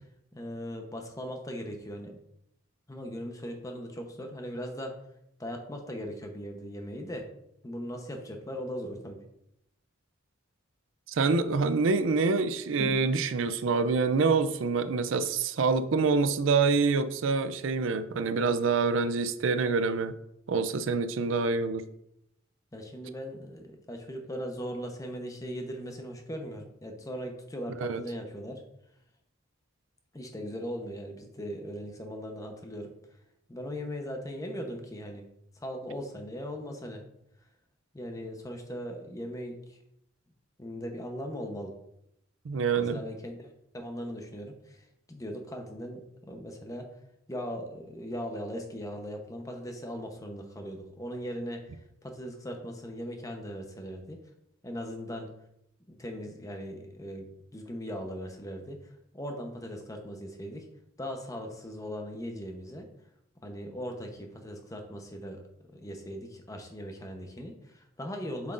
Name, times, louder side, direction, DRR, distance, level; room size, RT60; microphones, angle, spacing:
voice 1, 0.3-2.2 2.9-5.0 5.4-7.3 7.6-9.2 12.8-13.0 22.7-28.6 30.1-32.9 33.5-35.2 35.6-37.0 37.9-39.8 40.6-41.8 42.8-46.9 47.3-54.2 54.6-55.3 55.9-60.7 61.0-62.9 63.4-68.5, equal, 15° left, 3 dB, 0.8 m, -39 dB
voice 2, 11.1-20.2 20.5-21.9 27.8-28.0 42.5-43.0, right 4 dB, 70° right, 12 dB, 0.4 m, -26 dB
7.3 x 6.0 x 2.5 m, 0.77 s
head